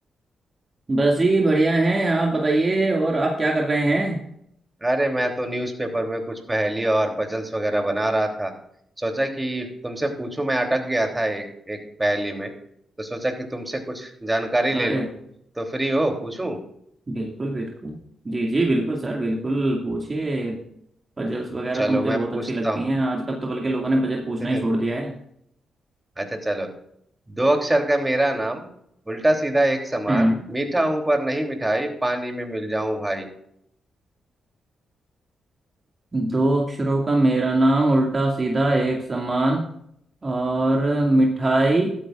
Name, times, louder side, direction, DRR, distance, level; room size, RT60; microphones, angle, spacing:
voice 1, 0.9-4.2 14.7-15.1 17.1-17.9 18.2-20.6 21.2-25.1 30.1-30.4 36.1-39.6 40.2-41.9, right 2 dB, 35° right, 0 dB, 2.3 m, -22 dB
voice 2, 4.8-8.5 9.0-12.5 13.0-15.1 15.6-16.6 21.7-22.9 24.4-24.6 26.2-26.7 27.3-28.6 29.1-33.3, right 1 dB, 20° right, 3 dB, 3.2 m, -24 dB
14.5 x 13.0 x 2.5 m, 0.71 s
hypercardioid pair, 40°, 0 cm